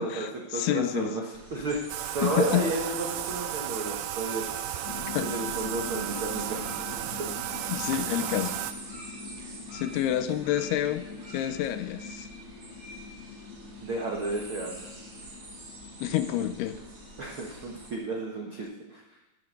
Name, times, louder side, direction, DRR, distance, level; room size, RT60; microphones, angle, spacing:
voice 1, 0.0-1.2 2.2-2.6 5.1-5.3 7.7-8.6 9.7-11.0 11.3-12.3 16.0-16.8, left 12 dB, 80° left, 10 dB, 2.7 m, -28 dB
voice 2, 0.5-4.4 5.2-6.8 7.1-7.2 13.8-14.7 17.2-19.0, right 2 dB, 65° right, -1 dB, 1.2 m, -32 dB
sound 1, 1.3-17.9, right 2 dB, 35° right, 2.7 m, -46 dB
Bathtub (filling or washing), 1.9-8.7, right 13 dB, 85° right, 2.1 m, -34 dB
sound 2, 4.8-18.6, left 6 dB, 60° left, 2.5 m, -44 dB
13.0 x 13.0 x 5.2 m, 1.0 s
omnidirectional pair, 4.7 m